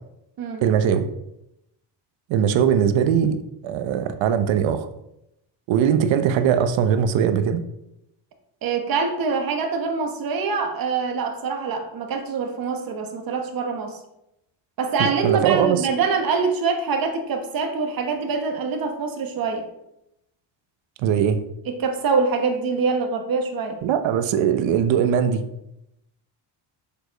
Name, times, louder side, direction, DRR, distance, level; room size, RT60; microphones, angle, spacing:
voice 1, 0.6-1.1 2.3-3.4 3.6-4.9 5.7-7.6 15.0-15.9 21.0-21.4 23.8-25.4, right 8 dB, 85° right, 10 dB, 0.9 m, -20 dB
voice 2, 8.6-14.0 14.8-19.7 21.6-23.8, right 5 dB, 50° right, 5 dB, 1.2 m, -24 dB
7.0 x 5.0 x 5.1 m, 0.83 s
cardioid pair, 170°, 44 cm